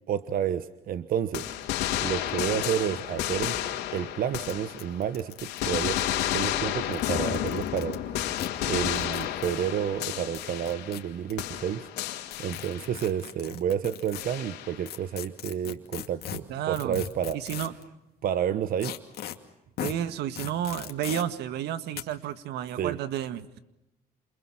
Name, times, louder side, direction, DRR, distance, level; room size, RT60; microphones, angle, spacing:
voice 1, 0.1-1.5 2.0-6.0 6.3-8.0 8.6-11.9 12.4-17.4 18.2-18.9 22.8-23.0, right 9 dB, 60° right, 13 dB, 1.1 m, -30 dB
sound 1, 1.3-5.1 5.4-11.1 11.4-13.0 14.2-14.9, left 12 dB, 90° left, 3.3 m, -31 dB
sound 2, 3.7-3.8 4.0-4.1 4.5-4.6 4.8-6.2 6.8-8.0 8.4-8.5 8.9-9.3 10.4-11.3 12.5-14.2 14.9-17.8 18.8-19.4 19.8-19.9 20.4-21.2 21.9-22.0, left 12 dB, 65° left, 2.5 m, -38 dB
voice 2, 16.5-17.0 17.3-17.7 19.8-23.6, right 10 dB, 80° right, 12 dB, 1.7 m, -31 dB
28.5 x 28.0 x 5.8 m, 0.91 s
cardioid pair, 110°, 17 cm